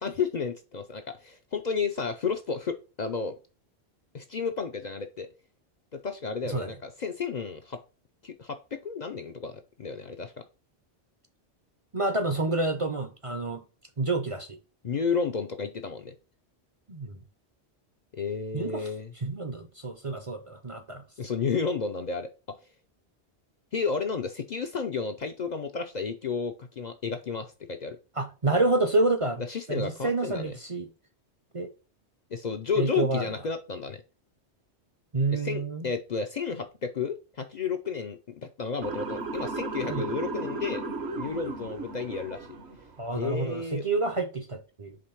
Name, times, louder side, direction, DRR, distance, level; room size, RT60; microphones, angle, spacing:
voice 1, 0.0-3.3 4.1-5.3 5.9-7.8 8.2-10.4 14.8-16.1 18.1-19.1 21.2-22.6 23.7-28.0 29.5-30.5 32.3-34.0 35.3-40.8 41.2-42.5 43.1-43.8, left 5 dB, 50° left, 0.6 m, -32 dB
voice 2, 11.9-13.6 14.0-14.6 16.9-17.2 18.5-18.9 19.2-21.0 28.2-29.4 29.7-30.9 31.5-31.7 32.8-33.3 35.1-35.8 39.9-40.1 43.0-45.0, right 2 dB, 35° right, 0.6 m, -28 dB
Motor vehicle (road) / Siren, 38.8-43.0, right 3 dB, 70° right, 1.3 m, -35 dB
5.1 x 3.4 x 5.7 m
omnidirectional pair, 1.1 m